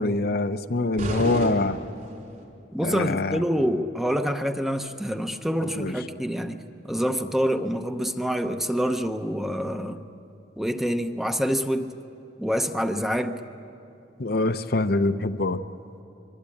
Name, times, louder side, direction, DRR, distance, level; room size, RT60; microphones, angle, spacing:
voice 1, 0.0-1.8 2.8-3.4 5.8-5.9 14.2-15.6, left 2 dB, 55° left, 9 dB, 0.7 m, -24 dB
sound 1, 1.0-2.4, equal, 50° right, 4.3 m, -31 dB
voice 2, 2.7-10.0 10.6-11.9 12.4-13.4, equal, ahead, 7 dB, 0.8 m, -26 dB
24.5 x 23.5 x 8.6 m, 2.7 s
head